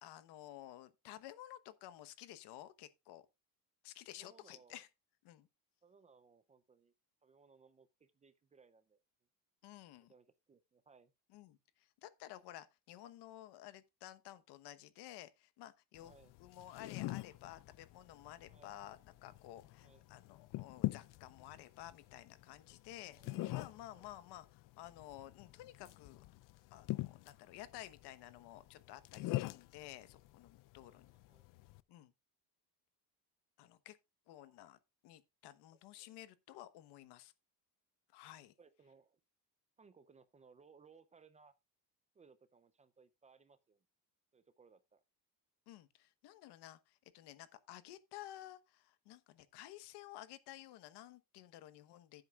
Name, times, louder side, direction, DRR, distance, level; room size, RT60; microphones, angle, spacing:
voice 1, 0.0-3.2 3.8-4.9 5.2-5.5 9.6-10.1 11.3-16.1 16.4-26.2 26.7-31.1 31.9-32.1 33.6-34.0 34.3-37.3 38.1-38.5 45.7-52.2, left 14 dB, 90° left, 1.1 m, -53 dB
voice 2, 4.1-4.8 5.8-6.9 7.2-9.0 10.1-11.1 16.0-16.3 18.5-18.7 19.8-20.0 23.1-24.1 30.8-31.0 31.3-31.5 34.4-34.6 36.0-36.2 38.6-39.2 39.8-41.5 42.1-43.8 44.3-45.0, right 5 dB, 20° right, 0.4 m, -65 dB
sound 1, 15.9-31.8, left 18 dB, 55° left, 0.5 m, -45 dB
15.0 x 7.9 x 2.4 m
cardioid pair, 180°, 39 cm